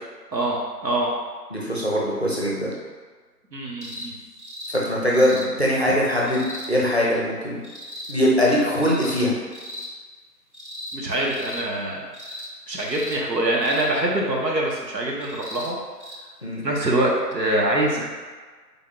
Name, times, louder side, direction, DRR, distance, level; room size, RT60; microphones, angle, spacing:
voice 1, 0.3-1.1 3.5-4.2 10.9-12.1 12.7-15.8 16.6-18.1, right 1 dB, 80° right, -2 dB, 1.1 m, -24 dB
voice 2, 1.5-2.7 4.7-7.6 8.1-9.3 16.4-16.6, equal, 40° left, -5 dB, 0.6 m, -22 dB
sound 1, 3.8-4.1 4.4-4.8 5.1-5.5 6.2-6.7 7.6-8.1 8.8-9.2 9.5-9.9 10.5-11.0 11.3-11.6 12.1-12.5 12.8-13.2 13.6-13.9 15.2-15.7 16.0-16.2 17.2-17.3, left 1 dB, 45° right, 0.4 m, -37 dB
3.6 x 2.3 x 3.8 m, 1.4 s
figure-of-eight pair, 175°, 49 cm